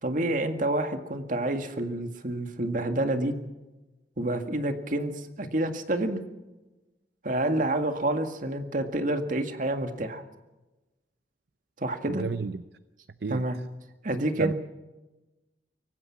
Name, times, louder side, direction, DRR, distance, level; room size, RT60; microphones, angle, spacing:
voice 1, 0.0-3.3 4.2-6.2 7.2-10.2 11.8-12.3 13.3-13.6 14.0-14.5, right 1 dB, 50° right, 1.9 m, -28 dB
voice 2, 12.1-12.5 13.2-13.4 14.4-14.5, right 4 dB, 65° right, 0.6 m, -30 dB
24.0 x 18.0 x 6.0 m
head